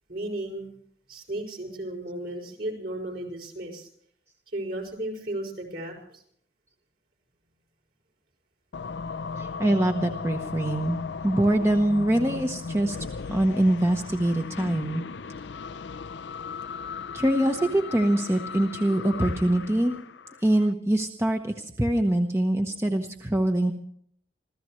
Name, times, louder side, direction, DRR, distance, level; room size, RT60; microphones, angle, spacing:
voice 1, 0.1-0.7 1.1-3.9 4.5-6.2, right 1 dB, 60° right, 0 dB, 5.8 m, -34 dB
sound 1, 8.7-20.7, left 5 dB, 80° left, 0.5 m, -37 dB
voice 2, 9.4-11.0 11.2-13.0 13.3-15.0 17.1-19.9 20.4-23.7, right 1 dB, 15° right, 4 dB, 0.9 m, -24 dB
26.5 x 15.5 x 3.2 m, 0.64 s
head